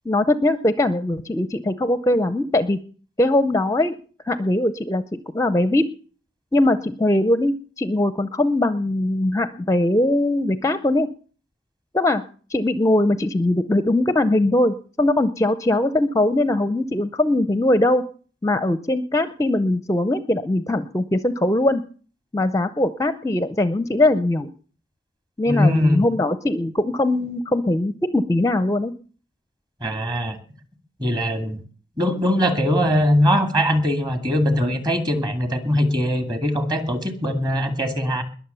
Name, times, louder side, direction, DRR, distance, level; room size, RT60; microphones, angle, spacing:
voice 1, 0.1-2.8 3.2-4.0 4.2-5.0 5.3-5.9 6.5-11.1 11.9-12.2 12.5-18.0 18.4-21.8 22.3-24.5 25.4-28.9, left 1 dB, 15° left, 13 dB, 0.6 m, -21 dB
voice 2, 25.5-26.0 29.8-30.4 31.0-31.6 32.0-38.2, equal, 25° right, 7 dB, 2.3 m, -21 dB
21.0 x 7.2 x 6.9 m, 0.42 s
head